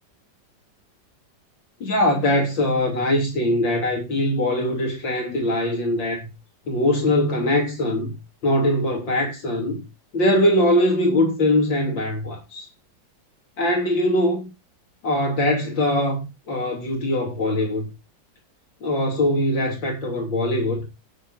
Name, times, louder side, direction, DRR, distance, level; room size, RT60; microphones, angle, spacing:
voice 1, 1.8-6.3 6.7-8.1 8.4-9.8 10.1-12.7 13.6-14.5 15.0-16.2 16.5-17.9 18.8-20.9, left 1 dB, 80° left, 3.7 m, -22 dB
18.0 x 6.9 x 2.6 m
omnidirectional pair, 2.0 m